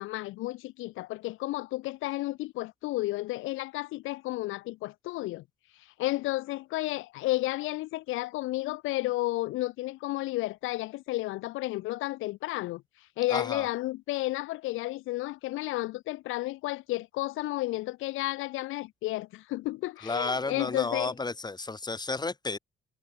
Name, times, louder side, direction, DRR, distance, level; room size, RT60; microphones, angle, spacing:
voice 1, 0.0-5.4 5.8-12.8 13.2-21.1, left 18 dB, 85° left, 0.5 m, -32 dB
voice 2, 13.3-13.7 20.0-22.6, left 3 dB, 20° left, 2.3 m, -32 dB
cardioid pair, 90°, 20 cm